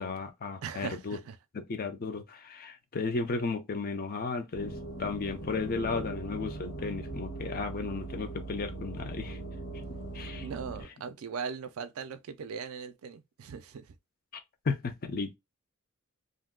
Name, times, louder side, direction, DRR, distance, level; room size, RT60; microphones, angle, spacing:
voice 1, 0.0-1.2 1.5-9.4 10.1-10.5 14.7-15.4, left 4 dB, 45° left, 0.5 m, -34 dB
voice 2, 0.6-1.4 10.4-13.8, right 6 dB, 75° right, 0.4 m, -39 dB
sound 1, 4.5-10.9, right 2 dB, 70° left, 1.2 m, -40 dB
2.6 x 2.2 x 3.6 m
head